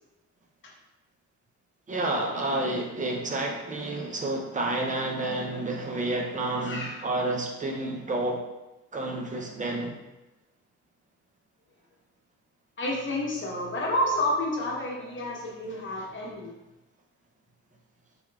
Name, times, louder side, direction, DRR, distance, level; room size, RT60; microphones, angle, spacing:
voice 1, 1.9-8.4 8.9-10.0, right 2 dB, 25° right, 1 dB, 0.6 m, -30 dB
voice 2, 6.6-7.0 12.8-16.5, left 1 dB, 40° left, -2 dB, 1.0 m, -30 dB
3.5 x 2.9 x 2.3 m, 1.0 s
cardioid pair, 90°, 30 cm